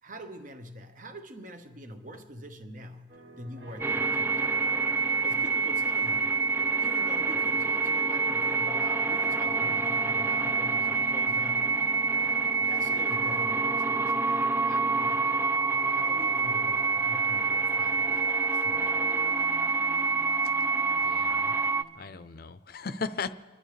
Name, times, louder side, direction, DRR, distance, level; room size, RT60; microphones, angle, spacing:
voice 1, 0.0-4.7 5.2-6.4 6.8-11.7 12.6-15.4 15.9-19.2, equal, 40° right, 7 dB, 1.1 m, -45 dB
sound 1, 3.1-22.4, right 1 dB, 60° right, 2.1 m, -49 dB
sound 2, 3.8-21.8, right 4 dB, 10° right, 0.3 m, -27 dB
voice 2, 21.0-21.6 21.9-23.3, left 4 dB, 50° left, 12 dB, 0.6 m, -36 dB
28.0 x 11.0 x 3.3 m, 1.4 s
head